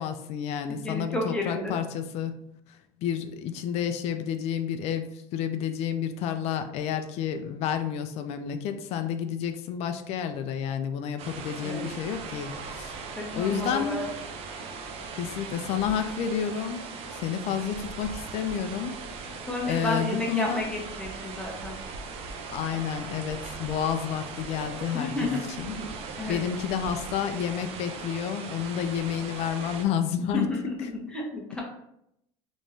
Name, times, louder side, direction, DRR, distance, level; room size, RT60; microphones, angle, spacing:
voice 1, 0.0-2.4 2.7-12.9 13.3-14.0 15.2-19.0 19.6-20.7 22.5-25.8 26.3-30.5, left 8 dB, 55° left, 8 dB, 0.4 m, -30 dB
voice 2, 0.8-1.7 11.6-11.9 13.2-14.1 19.5-21.7 24.9-25.4 25.7-25.9 26.2-26.4 30.3-31.6, left 2 dB, 5° left, -2 dB, 1.0 m, -31 dB
sound 1, 11.2-29.9, right 4 dB, 50° right, 0.6 m, -39 dB
3.6 x 3.0 x 2.7 m, 0.77 s
supercardioid pair, 125°, 13 cm